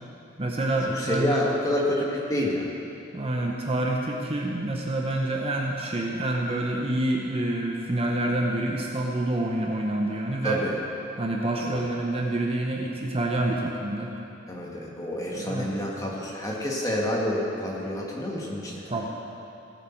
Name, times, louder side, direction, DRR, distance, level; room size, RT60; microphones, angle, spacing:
voice 1, 0.4-1.4 3.1-10.6 11.2-14.1 15.3-15.7 18.7-19.1, right 1 dB, 30° right, 0 dB, 0.8 m, -27 dB
voice 2, 0.9-2.7 10.4-10.7 11.6-11.8 14.5-18.8, left 1 dB, 15° left, -3 dB, 1.8 m, -28 dB
18.0 x 8.2 x 4.5 m, 2.8 s
head